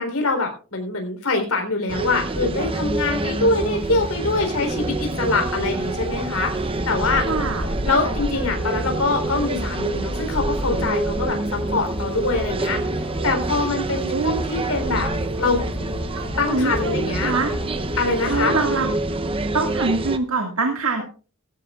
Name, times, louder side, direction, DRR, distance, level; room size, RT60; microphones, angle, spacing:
voice 1, 0.0-6.6 6.9-7.3 7.8-12.9 13.2-15.1 15.4-15.6 16.4-17.3 18.0-18.5, left 3 dB, 70° left, 3 dB, 3.8 m, -24 dB
sound 1, 1.9-20.2, right 2 dB, 25° right, 0.7 m, -27 dB
Conversation, 2.3-18.7, equal, 50° left, 4.4 m, -33 dB
voice 2, 7.3-7.6 14.1-14.4 16.1-17.5 18.2-18.9 19.5-21.0, right 3 dB, 70° right, 4 dB, 2.0 m, -24 dB
sound 2, 11.4-18.1, left 1 dB, ahead, 6.0 m, -46 dB
17.5 x 14.5 x 2.4 m, 0.36 s
head